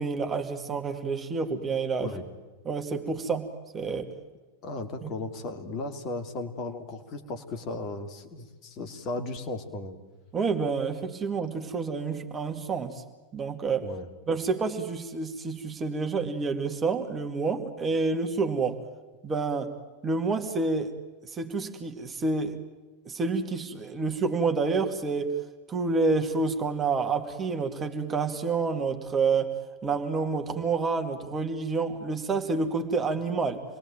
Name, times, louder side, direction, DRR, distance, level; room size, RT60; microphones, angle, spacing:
voice 1, 0.0-2.1 2.6-4.1 5.0-5.1 10.3-13.0 13.3-13.9 14.3-18.8 19.2-19.7 20.0-20.9 21.3-22.6 23.1-25.3 25.7-29.5 29.8-33.6, right 4 dB, 20° right, 5 dB, 2.5 m, -28 dB
voice 2, 4.6-10.0 13.8-14.1, left 2 dB, 35° left, 6 dB, 2.9 m, -36 dB
27.5 x 21.0 x 9.1 m, 1.2 s
figure-of-eight pair, 90°, 0 cm